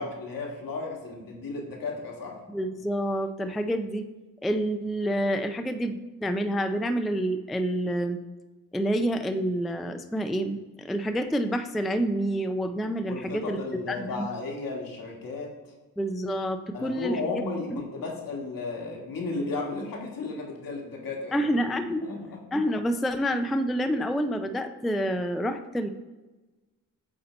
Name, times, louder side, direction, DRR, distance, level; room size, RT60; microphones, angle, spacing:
voice 1, 0.0-2.4 13.1-15.7 16.7-21.5 22.0-22.4, left 3 dB, 70° left, 0 dB, 1.5 m, -34 dB
voice 2, 2.5-4.1 4.4-8.2 8.7-13.6 13.9-14.3 16.0-17.2 17.7-17.8 21.3-22.1 22.5-25.9, equal, ahead, 8 dB, 0.3 m, -28 dB
7.9 x 2.8 x 4.3 m, 1.2 s
cardioid pair, 60°, 35 cm